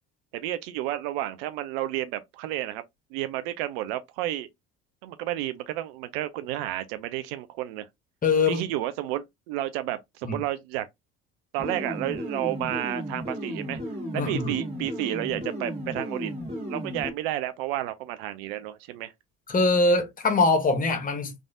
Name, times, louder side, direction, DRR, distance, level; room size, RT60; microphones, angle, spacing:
voice 1, 0.3-2.8 3.1-4.5 5.0-7.9 8.5-10.9 11.5-13.8 14.1-16.3 16.7-19.1, right 14 dB, 60° right, 0.4 m, -31 dB
voice 2, 8.2-8.6 10.2-10.4 14.1-14.5 19.5-21.3, left 3 dB, 25° left, 0.9 m, -23 dB
sound 1, 11.6-17.1, equal, 20° right, 1.6 m, -34 dB
3.3 x 2.5 x 2.3 m
figure-of-eight pair, 55°, 34 cm